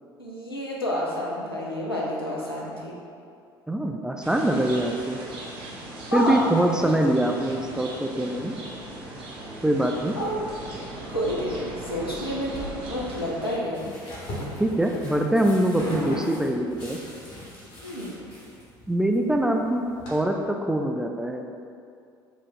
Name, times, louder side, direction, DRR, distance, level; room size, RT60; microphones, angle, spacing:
voice 1, 0.2-2.9 6.1-6.4 6.8-7.0 10.2-10.4 11.1-13.8 17.8-18.1, equal, 90° left, -5 dB, 0.6 m, -29 dB
voice 2, 3.7-5.2 6.1-8.6 9.6-10.2 14.6-17.0 18.9-21.4, right 1 dB, 5° right, 3 dB, 0.3 m, -24 dB
sound 1, 4.2-13.6, right 1 dB, 45° right, 0.8 m, -38 dB
sound 2, 13.0-20.1, equal, 60° left, 1.4 m, -38 dB
4.5 x 2.4 x 4.0 m, 2.4 s
figure-of-eight pair, 60°, 12 cm